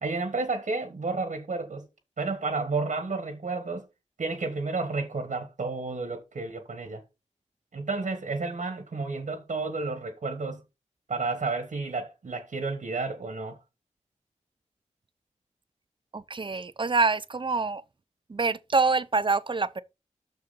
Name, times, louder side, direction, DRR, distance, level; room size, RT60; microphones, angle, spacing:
voice 1, 0.0-1.9 2.2-3.8 4.2-7.0 7.7-10.6 11.1-13.6, right 3 dB, 90° right, 1.4 m, -31 dB
voice 2, 16.1-17.8 18.3-19.8, right 4 dB, 40° right, 0.6 m, -26 dB
6.7 x 6.4 x 4.1 m
wide cardioid pair, 80°, 13 cm